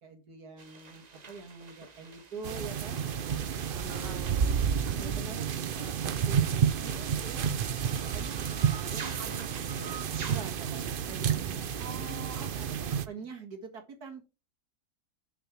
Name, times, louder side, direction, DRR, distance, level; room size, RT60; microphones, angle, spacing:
voice 1, 0.0-3.1 3.7-4.5 4.9-7.5 7.8-9.2 10.3-14.2, right 4 dB, 75° right, 3 dB, 2.4 m, -45 dB
sound 1, 0.6-10.5, right 4 dB, 35° right, 0.8 m, -48 dB
sound 2, 2.4-13.1, right 8 dB, 60° right, 0.6 m, -30 dB
voice 2, 3.8-4.3 8.8-10.1 11.8-13.3, right 1 dB, 10° right, 2 dB, 2.8 m, -47 dB
6.8 x 6.3 x 5.8 m, 0.30 s
omnidirectional pair, 1.7 m